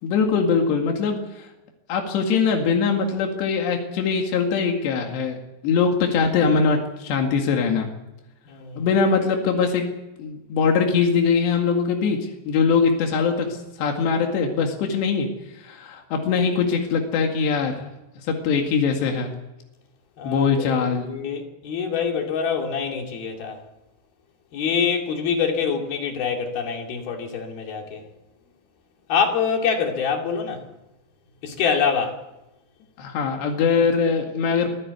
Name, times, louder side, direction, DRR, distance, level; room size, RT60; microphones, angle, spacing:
voice 1, 0.0-1.5 1.9-5.4 5.6-7.9 8.8-9.8 10.2-12.2 12.5-15.3 15.5-17.8 18.3-19.3 20.2-21.1 33.0-34.7, left 5 dB, 85° left, 4.3 m, -22 dB
voice 2, 8.5-8.9 20.2-23.6 24.5-28.0 29.1-30.6 31.4-32.2, left 6 dB, 65° left, 4.3 m, -25 dB
24.5 x 15.0 x 8.2 m
omnidirectional pair, 4.8 m